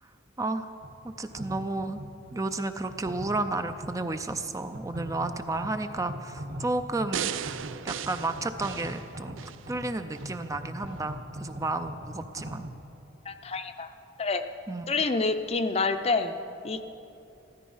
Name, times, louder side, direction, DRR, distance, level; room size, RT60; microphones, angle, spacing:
voice 1, 0.4-0.7 1.0-2.0 2.3-7.3 7.8-12.6 14.7-14.8, right 2 dB, 15° right, 8 dB, 0.4 m, -32 dB
sound 1, 0.8-12.7, equal, 50° right, 1.3 m, -42 dB
Echo Snare, 7.1-9.6 10.1-10.2, right 8 dB, 80° right, 0.5 m, -35 dB
voice 2, 13.2-13.9 14.2-14.5 14.9-16.3 16.6-16.8, left 3 dB, 30° left, 9 dB, 0.6 m, -27 dB
15.5 x 13.5 x 5.5 m, 2.8 s
head